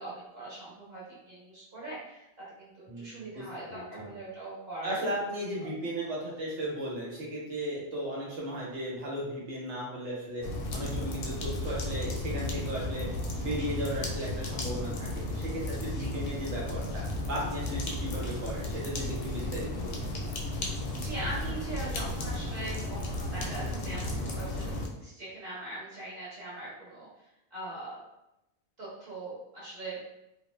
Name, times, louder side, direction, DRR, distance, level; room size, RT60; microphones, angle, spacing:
voice 1, 0.0-2.2 2.6-4.9 5.6-5.7 10.8-11.1 16.0-16.1 20.9-27.1 27.5-28.0 28.8-30.0, right 2 dB, 50° right, -8 dB, 1.1 m, -41 dB
voice 2, 2.9-4.1 4.8-10.4 10.7-13.1 13.4-17.0 17.3-20.1, equal, 85° right, -4 dB, 1.2 m, -36 dB
sound 1, 10.4-24.9, left 1 dB, 65° left, 0.7 m, -34 dB
2.4 x 2.0 x 3.0 m, 0.88 s
omnidirectional pair, 1.2 m